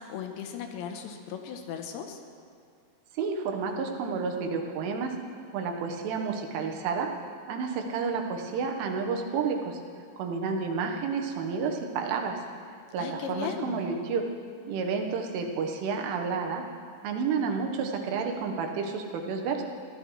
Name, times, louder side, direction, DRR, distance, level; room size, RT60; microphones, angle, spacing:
voice 1, 0.0-2.2 13.0-13.8, left 7 dB, 75° left, 5 dB, 3.0 m, -37 dB
voice 2, 3.1-5.1 5.5-7.1 7.5-9.8 10.2-12.4 12.9-14.3 14.7-16.7 17.0-19.6, right 5 dB, 90° right, 3 dB, 3.7 m, -30 dB
23.5 x 15.5 x 3.2 m, 2.4 s
omnidirectional pair, 5.5 m